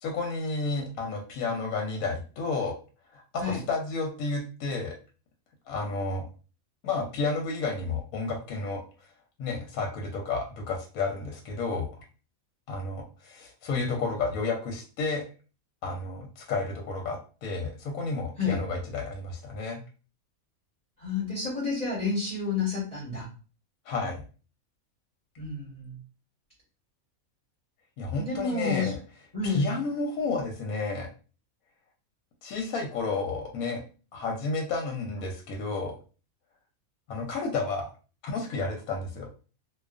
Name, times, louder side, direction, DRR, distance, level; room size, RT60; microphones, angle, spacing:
voice 1, 0.0-2.7 3.1-4.9 5.7-6.2 6.8-8.8 9.4-11.9 12.7-15.2 15.8-19.8 23.9-24.2 28.0-29.0 29.4-31.1 32.4-33.8 34.1-36.0 37.1-37.9 38.2-39.3, left 3 dB, 85° left, 1 dB, 1.0 m, -31 dB
voice 2, 21.0-23.3 25.4-25.9 28.2-28.9 29.3-29.7, left 4 dB, 35° left, -6 dB, 0.8 m, -30 dB
2.4 x 2.3 x 2.3 m, 0.36 s
omnidirectional pair, 1.5 m